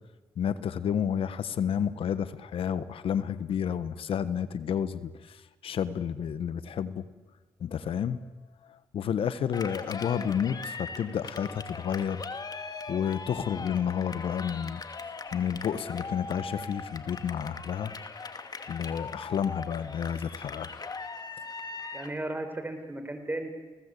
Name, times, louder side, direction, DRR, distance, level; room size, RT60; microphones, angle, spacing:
voice 1, 0.4-5.4 5.6-7.0 7.6-8.2 8.9-12.2 12.9-14.8 15.3-17.9 18.7-20.7, left 8 dB, 70° left, 14 dB, 1.4 m, -30 dB
Cheering, 9.5-22.2, left 4 dB, 45° left, 2.4 m, -40 dB
voice 2, 21.9-23.5, right 2 dB, 20° right, 7 dB, 5.8 m, -35 dB
30.0 x 19.0 x 8.5 m, 1.2 s
supercardioid pair, 55°, 10 cm